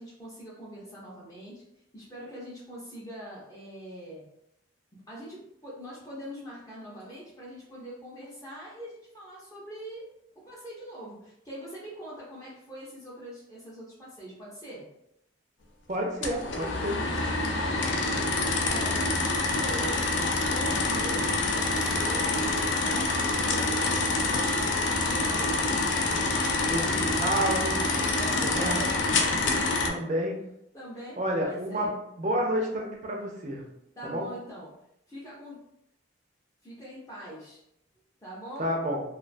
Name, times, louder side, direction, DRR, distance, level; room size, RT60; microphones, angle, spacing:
voice 1, 0.0-1.6 1.9-4.3 4.9-10.0 10.3-14.9 17.0-19.1 19.4-20.1 20.4-22.4 22.7-25.8 28.2-29.0 29.4-29.8 30.7-31.2 31.4-31.9 34.0-34.7 35.1-35.6 36.6-37.6 38.2-38.7, equal, 20° left, -6 dB, 0.5 m, -43 dB
voice 2, 15.9-17.0 26.7-27.8 28.4-28.8 29.9-30.4 31.2-33.6 34.0-34.3 38.6-39.0, equal, 40° right, 0 dB, 0.4 m, -29 dB
sound 1, 16.2-29.9, left 2 dB, 75° left, 0.4 m, -26 dB
2.3 x 2.2 x 2.4 m, 0.78 s
head